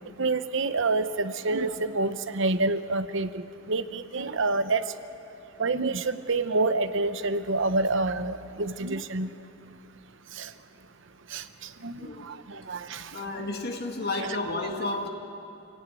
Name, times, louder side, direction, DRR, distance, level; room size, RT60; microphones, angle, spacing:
voice 1, 0.2-4.8 5.6-9.3 10.4-10.5 11.3-11.4 11.8-11.9 12.3-13.0, right 3 dB, 60° right, 11 dB, 1.0 m, -27 dB
voice 2, 12.0-12.4 13.1-15.1, left 2 dB, 50° left, 1 dB, 2.0 m, -32 dB
28.0 x 17.5 x 9.2 m, 2.7 s
head